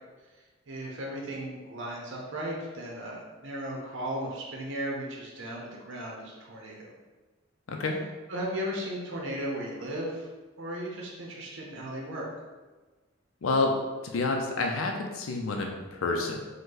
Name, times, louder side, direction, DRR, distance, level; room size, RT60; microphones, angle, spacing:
voice 1, 0.7-6.9 8.3-10.3 10.6-12.3, right 1 dB, 65° right, -2 dB, 0.7 m, -36 dB
voice 2, 7.7-8.0 13.4-13.8 14.1-16.4, left 3 dB, 85° left, 2 dB, 0.5 m, -28 dB
5.2 x 2.2 x 3.9 m, 1.3 s
head